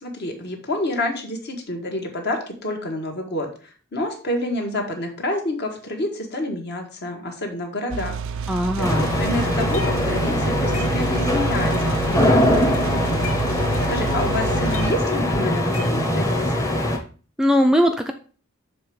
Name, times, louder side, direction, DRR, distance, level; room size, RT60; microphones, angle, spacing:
voice 1, 0.0-8.2 8.8-13.2 13.9-16.7, left 1 dB, 55° left, 3 dB, 1.4 m, -28 dB
sound 1, 7.9-14.9, right 6 dB, 65° right, 0.4 m, -29 dB
voice 2, 8.5-9.0 17.4-18.1, equal, 5° right, 4 dB, 0.4 m, -19 dB
sound 2, 8.8-10.2 10.5-11.4 11.7-12.2 12.5-14.3 14.7-16.4, left 1 dB, 80° left, 2.3 m, -37 dB
sound 3, 8.8-17.0, left 1 dB, 15° left, 0.9 m, -22 dB
6.9 x 3.4 x 4.8 m, 0.39 s
head